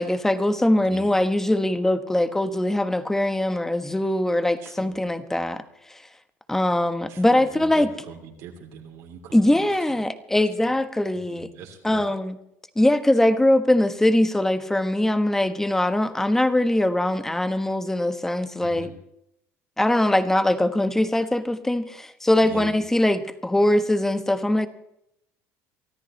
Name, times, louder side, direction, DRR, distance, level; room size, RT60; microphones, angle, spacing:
voice 1, 0.0-5.6 5.9-6.0 6.5-7.9 9.3-11.5 11.8-12.4 12.8-18.9 19.8-24.7, left 1 dB, 5° left, 1.2 m, -22 dB
voice 2, 0.8-1.2 4.6-5.0 7.1-10.0 10.6-10.7 11.1-12.1 18.6-18.9 22.4-22.8, right 7 dB, 75° right, 3.0 m, -42 dB
24.0 x 14.0 x 3.2 m
supercardioid pair, 105°, 6 cm